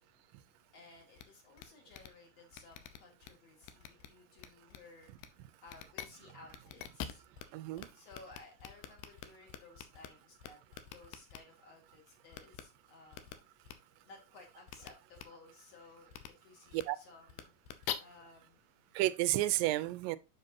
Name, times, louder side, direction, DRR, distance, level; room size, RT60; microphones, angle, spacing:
voice 1, 0.7-7.2 7.9-10.6 10.9-13.3 14.0-16.1 16.4-18.6, left 3 dB, 50° left, 3.0 m, -57 dB
sound 1, 1.2-1.3 1.6-1.7 1.9-2.1 2.5-3.3 3.6-4.1 4.4-4.8 5.2-5.3 5.7-6.1 6.5-7.4 7.8-7.9 8.1-10.1 10.4-11.4 12.3-12.6 13.1-13.3 13.7-13.8 14.7-14.9 15.2-15.3 16.1-16.3 16.7-16.8 17.3-17.9, left 11 dB, 85° left, 2.5 m, -44 dB
voice 2, 7.5-7.9 16.7-17.0 18.9-20.2, right 16 dB, 90° right, 2.3 m, -31 dB
7.5 x 6.6 x 2.7 m
omnidirectional pair, 3.9 m